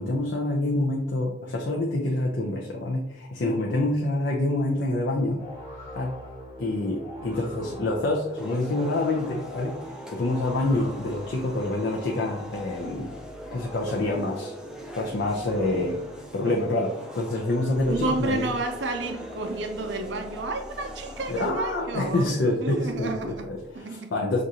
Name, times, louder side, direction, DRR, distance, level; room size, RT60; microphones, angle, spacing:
voice 1, 0.0-5.5 5.9-6.1 6.6-13.1 13.5-14.5 14.9-16.0 16.3-18.5 21.3-24.4, left 2 dB, 70° left, 0.5 m, -27 dB
sound 1, 5.4-23.8, left 1 dB, 15° left, 1.2 m, -42 dB
sound 2, 8.4-21.5, equal, 5° right, 0.4 m, -46 dB
voice 2, 15.5-16.0 16.4-16.6 17.8-23.5 23.7-24.1, right 2 dB, 70° right, 0.5 m, -31 dB
6.1 x 2.5 x 2.7 m
head